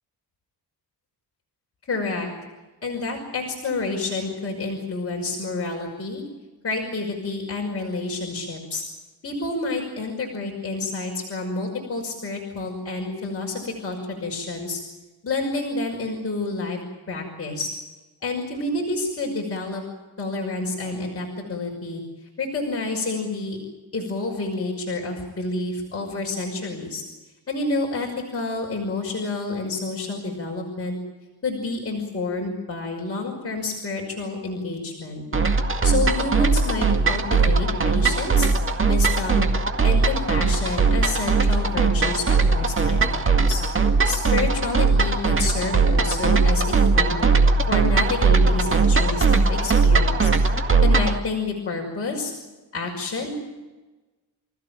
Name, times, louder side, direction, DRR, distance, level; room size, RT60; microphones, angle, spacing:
voice 1, 1.9-2.3 2.8-6.2 6.6-8.8 9.2-14.8 15.2-16.8 17.1-17.7 18.2-19.8 20.2-22.0 22.4-23.6 23.9-27.0 27.5-31.0 31.4-35.2 35.8-38.5 38.9-39.5 39.8-43.6 44.0-47.4 47.7-50.3 50.8-52.3 52.7-53.5, left 3 dB, 35° left, -1 dB, 5.9 m, -29 dB
sound 1, 35.3-51.2, right 4 dB, 30° right, 2.0 m, -19 dB
29.5 x 15.5 x 9.1 m, 1.2 s
wide cardioid pair, 115°, 40 cm